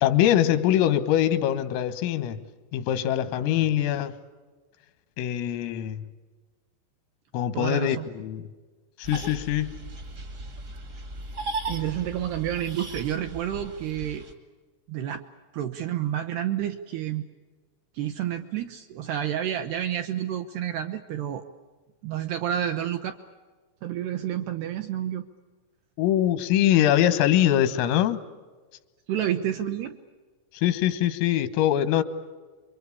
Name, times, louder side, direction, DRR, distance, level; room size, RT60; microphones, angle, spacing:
voice 1, 0.0-2.4 2.7-4.2 5.2-6.0 7.3-8.5 9.0-9.8 26.0-28.2 30.5-32.0, left 11 dB, 90° left, 3.9 m, -23 dB
voice 2, 7.5-8.1 11.7-14.3 14.9-15.2 15.5-17.2 17.9-21.4 22.0-23.2 23.8-25.3 26.6-26.9 29.1-30.0 31.9-32.0, right 11 dB, 75° right, 2.4 m, -29 dB
sound 1, 9.0-14.3, right 2 dB, 40° right, 1.3 m, -37 dB
28.5 x 23.5 x 8.4 m
omnidirectional pair, 5.7 m